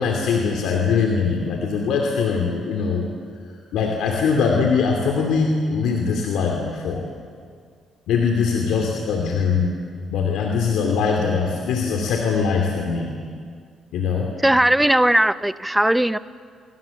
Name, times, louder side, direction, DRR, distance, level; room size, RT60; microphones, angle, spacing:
voice 1, 0.0-3.1 3.7-7.1 8.1-9.8 10.1-13.1 13.9-14.3, left 5 dB, 85° left, 1 dB, 2.8 m, -22 dB
voice 2, 14.4-16.2, right 1 dB, 5° right, 14 dB, 0.8 m, -18 dB
26.5 x 23.5 x 7.2 m, 2.1 s
cardioid pair, 90°, 0 cm